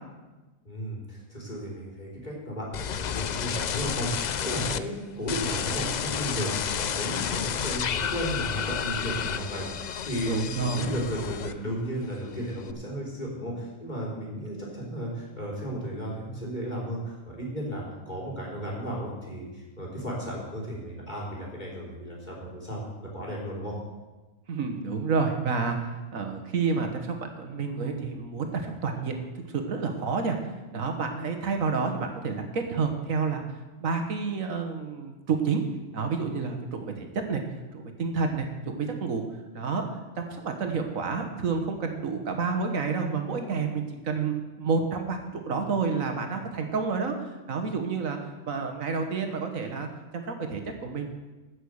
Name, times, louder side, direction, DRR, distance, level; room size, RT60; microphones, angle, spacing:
voice 1, 0.6-9.6 10.0-10.3 10.6-22.8 23.1-23.7, equal, 35° left, -4 dB, 3.8 m, -34 dB
sound 1, 2.7-4.8 5.3-11.8 12.1-12.7, left 8 dB, 80° left, 0.4 m, -31 dB
voice 2, 10.2-10.9 24.5-25.8 26.1-29.2 29.5-30.4 30.7-33.5 33.8-35.6 35.9-37.4 37.7-39.2 39.5-39.9 40.2-48.2 48.5-49.9 50.1-51.1, right 5 dB, 85° right, 5 dB, 1.7 m, -29 dB
15.5 x 6.3 x 6.4 m, 1.2 s
omnidirectional pair, 1.4 m